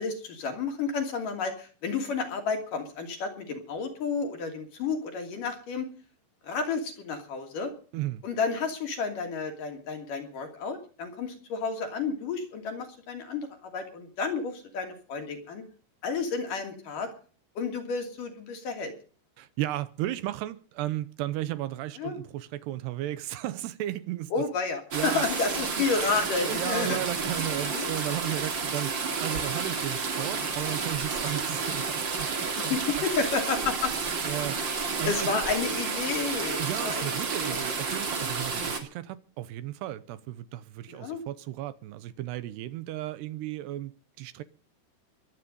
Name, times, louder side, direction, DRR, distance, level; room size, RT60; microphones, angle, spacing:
voice 1, 0.0-5.9 6.4-7.7 8.2-15.6 16.0-17.1 17.6-18.9 22.0-22.2 24.3-27.0 27.7-27.9 32.6-33.9 34.6-34.7 35.1-37.6 38.2-38.4 40.9-41.2, left 4 dB, 55° left, 4.1 m, -31 dB
voice 2, 7.9-8.2 19.4-24.3 24.9-25.2 25.7-25.8 26.4-28.9 29.2-33.0 34.2-34.6 35.0-35.4 36.6-43.9 44.2-44.4, right 14 dB, 80° right, 2.9 m, -34 dB
sound 1, 24.9-38.8, right 5 dB, 35° right, 2.3 m, -31 dB
22.5 x 9.9 x 5.4 m
omnidirectional pair, 4.9 m